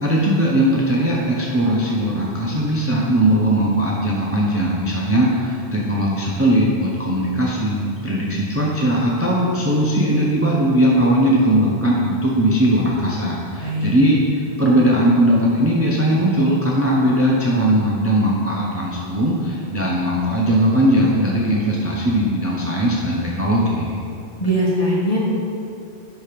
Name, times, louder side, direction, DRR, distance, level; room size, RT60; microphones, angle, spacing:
voice 1, 0.0-14.2 14.6-24.0, right 1 dB, 15° right, -4 dB, 0.7 m, -19 dB
voice 2, 13.6-14.0 24.4-25.2, equal, 35° left, -6 dB, 1.6 m, -20 dB
10.0 x 3.4 x 5.2 m, 2.7 s
omnidirectional pair, 1.1 m